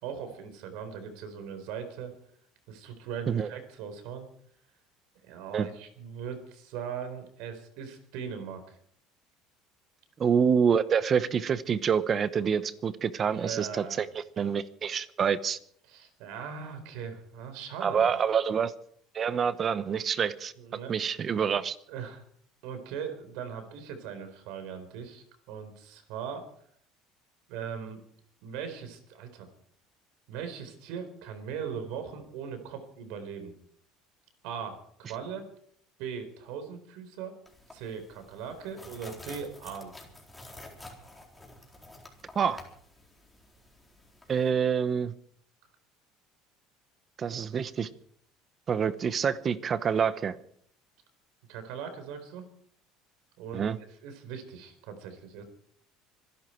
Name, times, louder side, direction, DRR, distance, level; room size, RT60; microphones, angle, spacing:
voice 1, 0.0-2.1 2.7-4.3 5.2-8.8 13.3-14.0 15.9-18.1 20.6-20.9 21.9-22.2 22.6-26.5 27.5-28.0 28.4-29.5 30.3-33.5 34.4-35.5 36.0-37.4 37.7-39.9 51.5-52.5 53.4-53.7 54.0-55.4, right 7 dB, 75° right, 8 dB, 4.3 m, -39 dB
voice 2, 10.2-15.6 17.8-18.7 19.1-20.5 20.9-21.8 42.3-42.6 44.3-45.1 47.2-47.9 48.7-50.4 53.5-53.8, right 7 dB, 35° right, 15 dB, 1.0 m, -27 dB
sound 1, 37.5-44.5, left 2 dB, 10° left, 4.1 m, -50 dB
25.5 x 11.5 x 4.6 m, 0.62 s
supercardioid pair, 115°, 0 cm